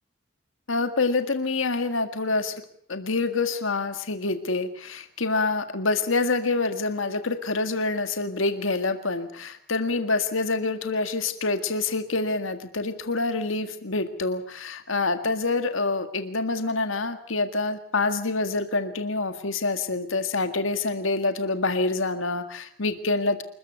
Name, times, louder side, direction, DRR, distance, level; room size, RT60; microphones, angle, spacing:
voice 1, 0.7-2.5 2.9-23.4, left 3 dB, 85° left, 9 dB, 1.8 m, -26 dB
27.5 x 14.5 x 8.0 m, 0.64 s
head